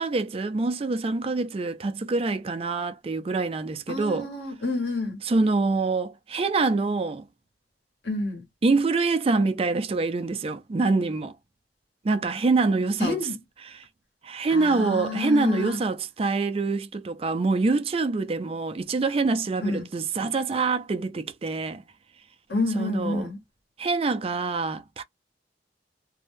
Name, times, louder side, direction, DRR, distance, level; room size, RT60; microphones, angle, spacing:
voice 1, 0.0-4.3 5.2-7.3 8.6-11.4 12.0-13.2 13.6-13.8 14.2-21.8 22.8-23.3 23.8-25.0, right 3 dB, 35° right, 0.4 m, -25 dB
voice 2, 3.9-5.2 8.0-8.4 13.0-13.4 14.5-15.8 19.6-19.9 22.5-23.4, left 2 dB, 70° left, 1.4 m, -29 dB
2.6 x 2.2 x 3.3 m
head